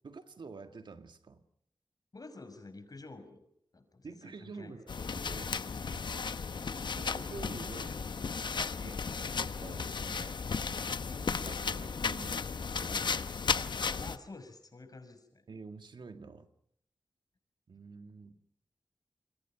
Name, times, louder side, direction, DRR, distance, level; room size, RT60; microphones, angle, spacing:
voice 1, 0.0-1.4 4.0-5.5 5.8-6.2 6.9-8.0 8.8-9.0 9.2-10.4 11.4-13.0 15.5-16.5 17.7-18.4, right 4 dB, 70° right, 7 dB, 1.8 m, -48 dB
voice 2, 2.1-3.5 3.7-4.8 8.8-9.0 13.7-15.4, left 3 dB, 50° left, 9 dB, 5.8 m, -50 dB
sound 1, 4.9-14.2, left 5 dB, 65° left, 0.9 m, -35 dB
27.5 x 23.0 x 5.9 m, 0.70 s
cardioid pair, 45°, 8 cm